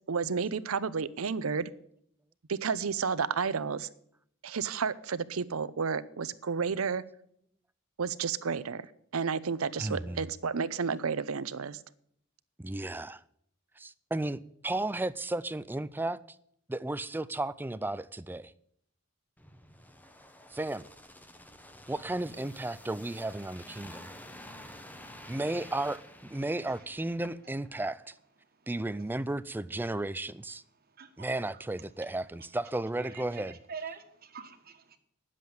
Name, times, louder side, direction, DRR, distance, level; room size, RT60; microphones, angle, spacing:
voice 1, 0.1-1.7 2.5-3.9 4.4-7.0 8.0-8.8 9.1-11.8, right 5 dB, 85° right, 0.7 m, -31 dB
voice 2, 9.8-10.3 12.6-13.2 13.8-16.2 16.7-18.5 20.5-20.9 21.9-24.1 25.3-28.1 28.7-30.6 31.2-33.6, right 2 dB, 10° right, 0.4 m, -34 dB
sound 1, 19.4-27.7 28.0-28.2, left 1 dB, 10° left, 1.0 m, -50 dB
voice 3, 33.0-35.0, right 6 dB, 45° right, 1.4 m, -44 dB
10.5 x 7.5 x 9.3 m
head